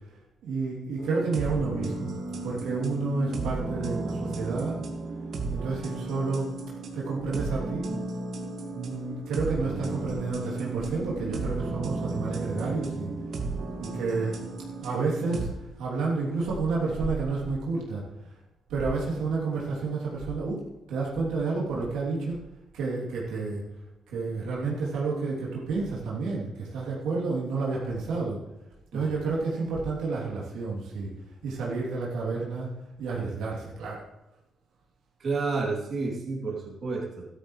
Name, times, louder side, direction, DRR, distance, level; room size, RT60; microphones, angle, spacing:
voice 1, 0.4-2.1 2.4-4.8 5.5-6.5 6.9-7.9 8.7-13.1 13.8-14.4 14.8-18.0 18.7-22.4 22.7-23.6 24.1-28.4 28.9-31.1 31.4-32.7 33.0-34.0, right 4 dB, 85° right, -5 dB, 3.1 m, -30 dB
sound 1, 1.0-15.5, right 3 dB, 65° right, 2.1 m, -34 dB
voice 2, 35.2-37.3, right 3 dB, 50° right, -3 dB, 3.2 m, -30 dB
13.0 x 12.5 x 3.3 m, 0.92 s
cardioid pair, 90°, 0 cm